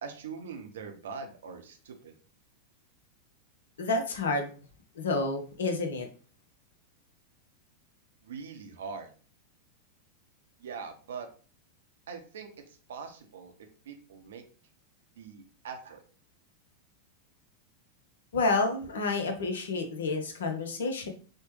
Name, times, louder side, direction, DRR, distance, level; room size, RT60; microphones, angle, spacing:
voice 1, 0.0-2.1 8.2-9.1 10.6-11.3 12.1-13.5 13.8-14.4 15.1-16.0, right 5 dB, 60° right, 5 dB, 0.6 m, -42 dB
voice 2, 3.8-4.5 4.9-6.1 18.3-21.1, left 3 dB, 65° left, 5 dB, 0.6 m, -29 dB
4.2 x 2.1 x 3.1 m, 0.39 s
figure-of-eight pair, 90°, 0 cm